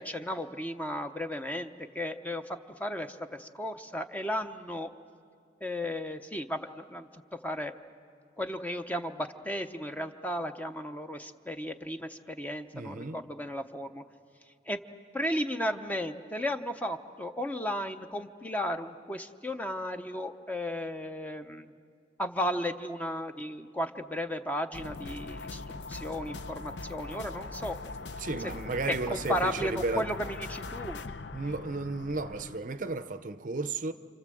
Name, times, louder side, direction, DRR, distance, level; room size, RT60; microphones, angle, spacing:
voice 1, 0.0-4.9 5.6-7.1 7.4-7.7 8.4-14.0 14.7-14.8 15.1-21.7 22.2-27.8 29.1-31.0, equal, 10° left, 0.7 m, -34 dB
voice 2, 12.7-13.2 28.2-30.1 31.3-33.9, right 3 dB, 45° right, 0.6 m, -33 dB
sound 1, 24.7-32.6, left 3 dB, 70° left, 0.7 m, -41 dB
29.5 x 26.5 x 7.7 m
head